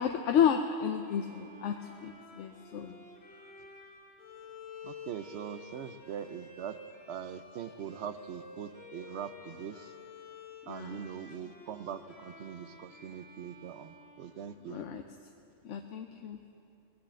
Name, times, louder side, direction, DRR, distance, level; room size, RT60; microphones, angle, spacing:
voice 1, 0.0-3.0 10.7-11.0 14.7-15.0 15.6-16.4, left 8 dB, 80° left, 5 dB, 1.0 m, -31 dB
Bowed string instrument, 1.0-14.9, left 3 dB, 60° left, 1.7 m, -51 dB
voice 2, 4.8-6.8 7.1-9.9 10.7-14.8, right 8 dB, 70° right, 12 dB, 0.9 m, -42 dB
19.0 x 8.3 x 7.7 m, 2.6 s
omnidirectional pair, 1.2 m